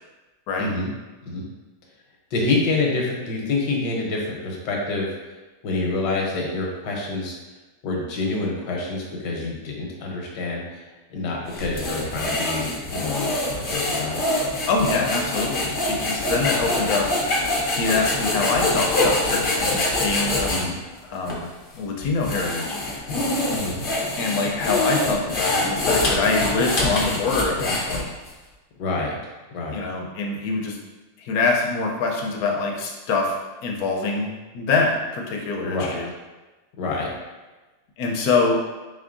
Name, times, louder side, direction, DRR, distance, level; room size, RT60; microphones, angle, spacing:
voice 1, 0.6-0.9 1.2-1.5 2.3-5.1 5.6-7.4 7.8-10.8 11.1-14.3 20.5-20.8 23.5-23.8 28.8-29.2 29.5-29.8 35.6-36.0 36.8-37.1, left 3 dB, 85° left, -1 dB, 1.5 m, -27 dB
sound 1, 11.5-20.6 21.3-21.4 22.0-28.3, left 2 dB, 50° left, 0.6 m, -24 dB
voice 2, 14.7-20.7 21.0-21.5 21.7-22.8 24.2-28.1 29.7-30.8 31.2-36.1 38.0-38.6, left 4 dB, 70° left, 1 dB, 1.1 m, -25 dB
4.4 x 3.8 x 2.5 m, 1.2 s
omnidirectional pair, 1.8 m